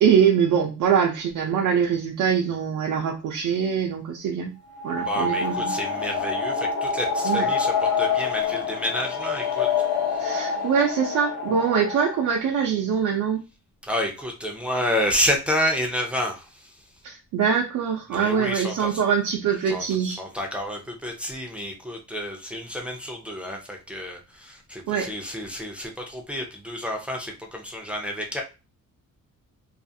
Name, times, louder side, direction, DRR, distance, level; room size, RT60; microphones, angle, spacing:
voice 1, 0.0-4.5 4.8-5.7 7.2-7.5 10.2-13.4 17.0-20.2 24.9-25.1, right 7 dB, 70° right, 0 dB, 0.5 m, -23 dB
sound 1, 4.7-12.3, left 5 dB, 50° left, 0.8 m, -26 dB
voice 2, 5.0-9.7 13.8-16.7 18.1-19.0 19.7-28.4, left 1 dB, 5° right, 0 dB, 0.5 m, -29 dB
2.5 x 2.4 x 2.6 m, 0.30 s
cardioid pair, 140°, 32 cm